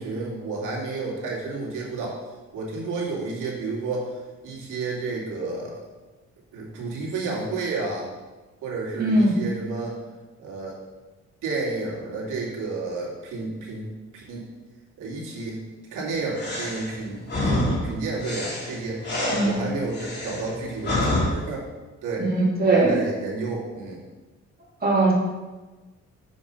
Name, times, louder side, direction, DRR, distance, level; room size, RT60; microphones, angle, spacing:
voice 1, 0.0-2.2 2.5-4.1 4.4-5.8 6.5-8.1 8.6-10.0 10.4-10.7 11.4-13.9 14.1-14.4 15.0-15.6 15.9-19.1 19.4-21.7 22.0-22.3 22.6-24.0, right 3 dB, 85° right, -3 dB, 2.4 m, -31 dB
voice 2, 9.0-9.4 19.3-19.6 22.2-23.0 24.8-25.1, right 2 dB, 30° right, -3 dB, 2.6 m, -20 dB
sound 1, 16.3-21.3, left 1 dB, 35° left, 2.7 m, -27 dB
7.0 x 5.1 x 5.4 m, 1.2 s
cardioid pair, 90°, 30 cm